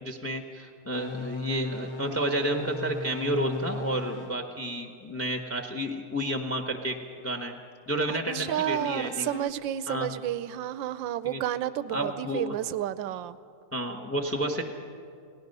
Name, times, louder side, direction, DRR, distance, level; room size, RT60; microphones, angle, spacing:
voice 1, 0.0-7.6 7.9-9.3 9.9-10.1 11.2-11.4 11.9-12.6 13.7-14.6, right 1 dB, 10° left, 4 dB, 0.9 m, -31 dB
sound 1, 0.9-4.4 8.2-9.5, left 3 dB, 40° left, 0.4 m, -38 dB
voice 2, 8.1-13.4, right 11 dB, 80° right, 15 dB, 1.4 m, -31 dB
29.0 x 18.5 x 5.4 m, 2.4 s
omnidirectional pair, 2.1 m